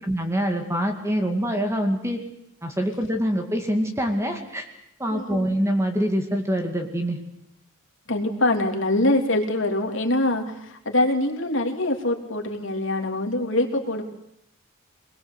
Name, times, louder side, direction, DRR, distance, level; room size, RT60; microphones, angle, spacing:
voice 1, 0.0-2.2 2.6-4.7 5.0-7.2, equal, 15° right, 4 dB, 2.3 m, -25 dB
voice 2, 5.1-5.5 8.1-14.0, left 1 dB, 65° left, 2 dB, 3.3 m, -24 dB
24.0 x 21.0 x 8.2 m, 0.78 s
head